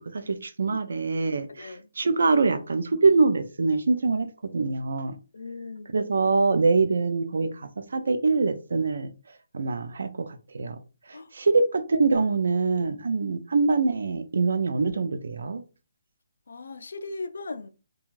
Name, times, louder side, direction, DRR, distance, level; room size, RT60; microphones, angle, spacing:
voice 1, 0.1-4.3 4.5-5.1 5.9-9.1 9.5-10.8 11.1-15.6, right 4 dB, 65° right, 0.4 m, -24 dB
voice 2, 1.5-1.9 5.3-6.0 11.1-11.3 16.5-17.7, left 3 dB, 70° left, 0.4 m, -38 dB
2.5 x 2.3 x 3.1 m
hypercardioid pair, 175°, 0 cm